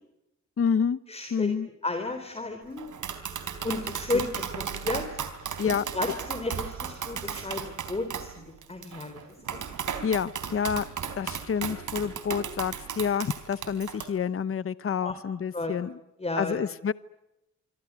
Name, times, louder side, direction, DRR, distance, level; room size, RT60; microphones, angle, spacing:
voice 1, 0.6-1.0 1.3-1.7 5.6-5.8 10.0-10.8 11.1-16.0 16.4-16.9, left 7 dB, 50° left, 16 dB, 0.9 m, -28 dB
voice 2, 1.1-1.5 1.8-2.9 3.6-5.1 5.9-7.6 7.9-9.6 15.0-15.1 15.5-15.7 16.2-16.6, left 2 dB, 20° left, 7 dB, 3.8 m, -33 dB
Tap, 2.8-14.0, right 7 dB, 90° right, 4.0 m, -35 dB
26.0 x 25.5 x 8.2 m, 0.89 s
wide cardioid pair, 115°, 30 cm